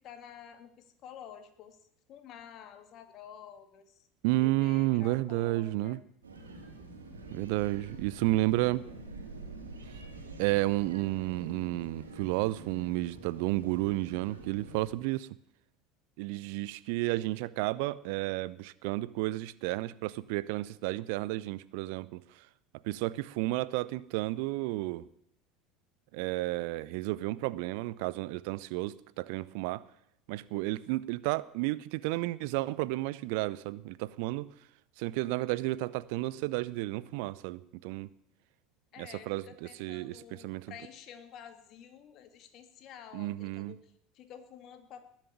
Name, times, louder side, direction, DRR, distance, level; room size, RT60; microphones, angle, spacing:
voice 1, 0.0-1.8 2.1-4.1 4.4-6.0 38.9-45.1, left 9 dB, 45° left, 2.2 m, -50 dB
voice 2, 4.2-6.0 7.3-8.9 10.4-15.3 16.2-22.2 22.8-25.1 26.1-29.8 30.3-34.5 35.0-38.1 39.0-40.7 43.1-43.7, right 18 dB, 60° right, 0.6 m, -32 dB
sound 1, 6.2-14.9, right 3 dB, 80° right, 3.1 m, -46 dB
20.0 x 7.5 x 9.5 m
figure-of-eight pair, 70°, 0 cm